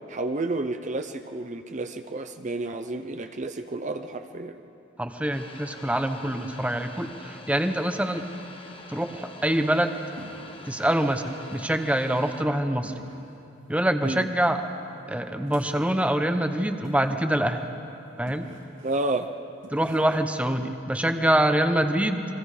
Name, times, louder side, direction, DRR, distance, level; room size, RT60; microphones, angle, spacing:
voice 1, 0.1-4.6 14.0-14.2 18.8-19.3, right 2 dB, 40° right, 7 dB, 0.7 m, -30 dB
voice 2, 5.0-8.2 8.9-10.0 10.7-12.9 13.7-14.6 15.1-17.6 18.2-18.5 19.7-22.3, right 1 dB, 5° right, 7 dB, 0.9 m, -25 dB
sound 1, 5.3-12.4, left 2 dB, 30° left, 1.3 m, -46 dB
sound 2, 10.2-10.7 11.1-11.2 11.5-11.8 12.1-12.2 12.8-13.4 14.2-14.6 15.5-16.0 16.8-17.3 17.6-17.7 18.3-19.2 19.6-20.3, right 1 dB, 75° right, 2.2 m, -47 dB
29.5 x 23.0 x 5.0 m, 2.9 s
head